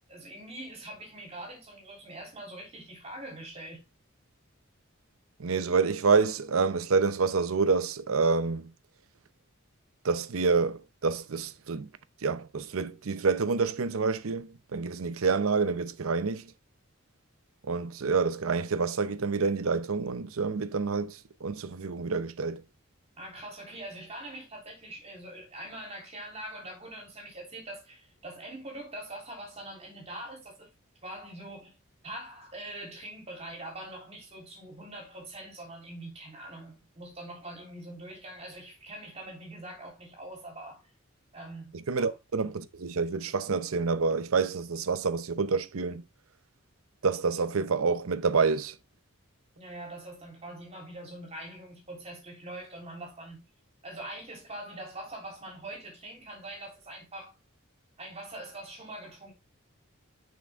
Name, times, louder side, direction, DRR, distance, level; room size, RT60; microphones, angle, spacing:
voice 1, 0.1-3.8 23.2-30.7 31.0-31.8 32.0-40.8 41.3-42.1 49.6-53.4 53.8-57.3 58.0-59.3, right 1 dB, 30° right, 3.5 m, -43 dB
voice 2, 5.4-8.7 10.0-11.9 12.2-16.5 17.7-22.6 41.7-46.0 47.0-48.7, right 4 dB, 85° right, 0.7 m, -28 dB
7.6 x 6.1 x 3.5 m
head